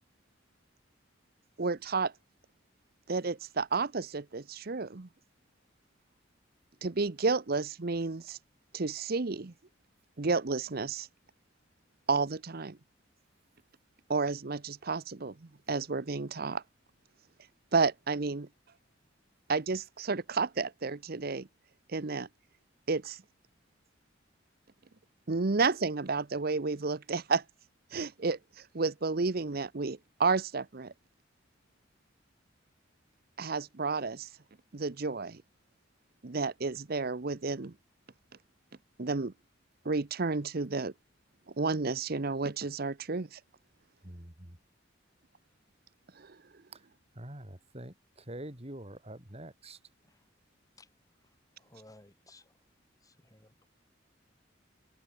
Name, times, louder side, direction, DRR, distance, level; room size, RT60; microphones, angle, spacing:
voice 1, 1.6-2.1 3.1-5.1 6.8-8.4 8.7-9.5 10.2-11.1 12.1-12.8 14.1-15.3 15.7-16.6 17.7-18.5 19.5-21.5 21.9-22.3 22.9-23.2 25.3-27.4 27.9-30.9 33.4-34.3 34.7-35.4 36.2-37.7 39.0-39.3 39.8-40.9 41.6-43.4 46.2-46.3, right 4 dB, 50° right, 0.8 m, -31 dB
voice 2, 44.0-44.6 46.7-46.8 47.1-49.8, right 1 dB, 30° right, 3.3 m, -45 dB
voice 3, 51.6-52.5 53.0-53.7, left 2 dB, 20° left, 4.1 m, -58 dB
open air
head